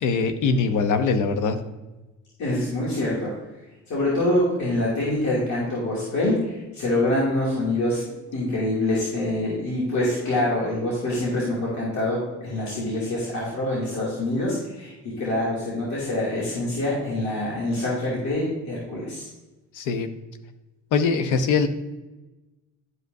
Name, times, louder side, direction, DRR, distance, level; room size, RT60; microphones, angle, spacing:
voice 1, 0.0-1.6 19.7-20.1 20.9-21.7, left 5 dB, 85° left, 9 dB, 0.8 m, -22 dB
voice 2, 2.4-3.3 3.9-19.3, left 1 dB, 70° left, -7 dB, 2.6 m, -25 dB
11.0 x 5.4 x 2.6 m, 1.1 s
cardioid pair, 90°, 30 cm